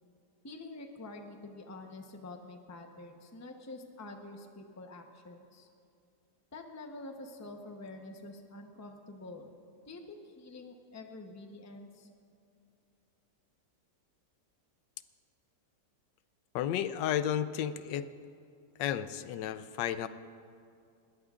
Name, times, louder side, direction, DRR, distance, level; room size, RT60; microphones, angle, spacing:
voice 1, 0.4-5.7 6.5-9.5 9.9-12.1, left 2 dB, 15° left, 4 dB, 0.5 m, -47 dB
voice 2, 16.5-18.1 18.8-20.1, left 10 dB, 85° left, 13 dB, 1.2 m, -32 dB
20.0 x 20.0 x 2.5 m, 2.4 s
omnidirectional pair, 1.9 m